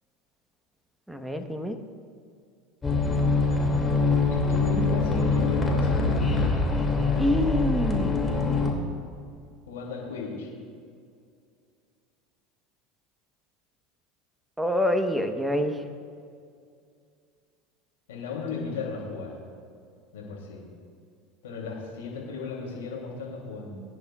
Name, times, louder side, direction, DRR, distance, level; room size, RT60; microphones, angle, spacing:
voice 1, 1.1-1.7 7.2-8.2 14.6-15.7, left 1 dB, 5° right, 6 dB, 1.2 m, -26 dB
sound 1, 2.8-8.7, left 3 dB, 20° left, 2.6 m, -24 dB
voice 2, 4.3-6.6 9.7-10.5 18.1-19.3 20.1-20.6 21.4-23.8, left 4 dB, 85° left, -2 dB, 3.0 m, -35 dB
21.5 x 10.5 x 2.5 m, 2.3 s
hypercardioid pair, 90°, 0 cm